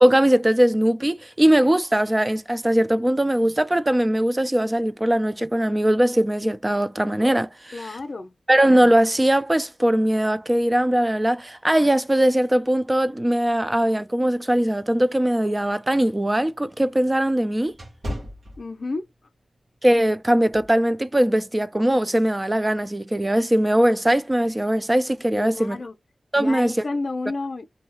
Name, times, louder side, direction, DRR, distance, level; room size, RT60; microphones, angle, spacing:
voice 1, 0.0-8.0 8.5-17.7 19.8-25.8 26.3-26.8, right 1 dB, 25° right, 0.4 m, -20 dB
voice 2, 7.7-8.3 18.6-19.0 25.3-25.9 26.4-27.7, left 3 dB, 65° left, 0.6 m, -30 dB
sound 1, 15.6-19.2 19.7-19.9 20.5-20.8, equal, 70° right, 1.0 m, -37 dB
2.7 x 2.3 x 2.9 m
cardioid pair, 40°, 0 cm